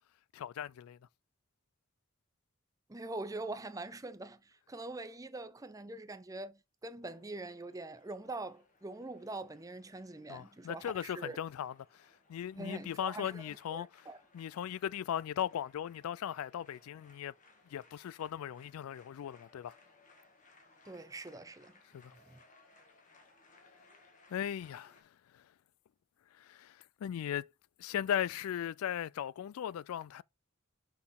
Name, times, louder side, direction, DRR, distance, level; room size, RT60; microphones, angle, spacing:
voice 1, 0.3-1.0 10.3-14.1 14.3-17.3 17.7-19.7 21.9-22.1 24.3-25.0 25.3-25.4 26.4-27.5 27.8-30.2, left 9 dB, 85° left, 0.3 m, -38 dB
voice 2, 2.9-11.4 12.6-14.2 20.9-21.8 22.1-22.4, right 2 dB, 15° right, 0.5 m, -44 dB
sound 1, 7.0-25.0, left 3 dB, 35° left, 1.5 m, -65 dB
6.0 x 5.8 x 3.7 m
head